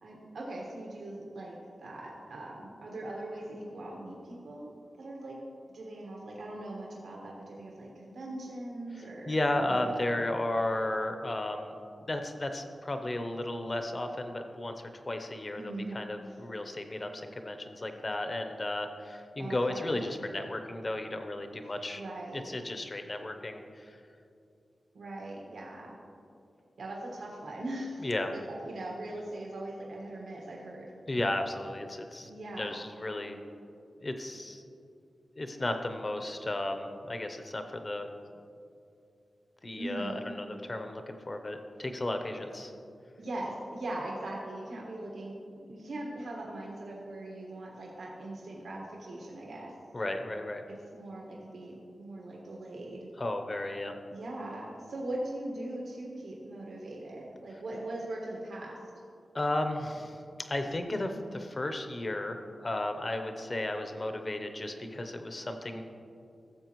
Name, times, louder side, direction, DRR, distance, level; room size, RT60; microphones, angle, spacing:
voice 1, 0.0-4.7 5.0-5.4 5.7-10.0 15.6-16.0 16.3-16.4 19.4-19.9 21.9-22.5 24.9-25.9 26.8-28.1 28.5-30.9 32.2-32.7 39.8-40.2 43.2-49.7 50.9-53.1 54.1-58.8, right 1 dB, 90° right, -3 dB, 1.4 m, -40 dB
voice 2, 9.0-11.7 12.1-22.0 22.3-24.0 28.0-28.3 31.1-32.3 32.6-33.4 34.0-34.6 35.4-38.1 39.6-42.7 49.9-50.6 53.2-53.9 59.3-65.8, left 1 dB, 30° left, 6 dB, 0.7 m, -34 dB
15.5 x 7.4 x 3.0 m, 2.5 s
wide cardioid pair, 175°, 0 cm